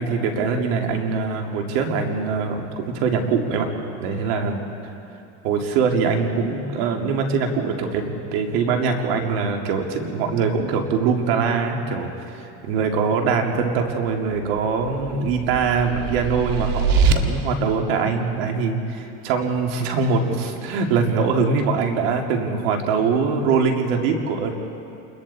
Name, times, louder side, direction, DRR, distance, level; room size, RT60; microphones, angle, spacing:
voice 1, 0.0-3.7 4.0-4.6 5.4-24.6, right 5 dB, 90° right, 2 dB, 2.5 m, -23 dB
sound 1, 14.4-17.1, right 5 dB, 65° right, 1.8 m, -23 dB
29.5 x 21.5 x 4.2 m, 2.8 s
cardioid pair, 135°, 29 cm